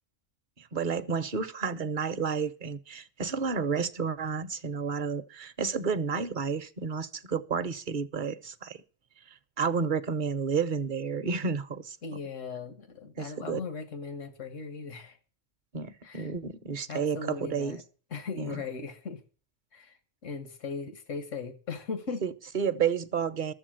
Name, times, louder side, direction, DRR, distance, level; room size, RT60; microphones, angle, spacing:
voice 1, 0.6-8.8 9.6-12.0 13.2-13.6 15.7-17.8 18.4-18.6 22.2-23.5, right 6 dB, 45° right, 0.8 m, -31 dB
voice 2, 12.0-15.2 16.0-16.3 16.9-17.8 18.1-19.2 19.7-20.0 20.2-22.2, left 4 dB, 90° left, 1.7 m, -38 dB
13.0 x 7.2 x 7.5 m
omnidirectional pair, 1.3 m